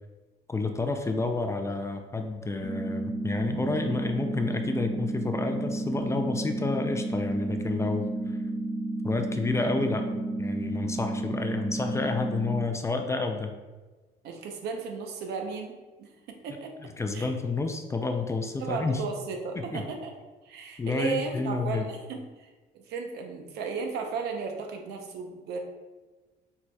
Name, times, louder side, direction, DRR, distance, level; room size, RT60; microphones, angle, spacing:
voice 1, 0.5-8.1 9.0-13.5 17.0-19.0 19.6-19.8 20.8-21.9, left 3 dB, 15° left, 5 dB, 0.4 m, -30 dB
sound 1, 2.6-12.6, right 2 dB, 35° left, 1.0 m, -32 dB
voice 2, 14.2-16.1 16.4-16.7 17.1-17.3 18.6-20.1 20.4-25.6, right 4 dB, 80° right, 3 dB, 0.7 m, -35 dB
4.5 x 4.2 x 2.3 m, 1.2 s
cardioid pair, 110°, 17 cm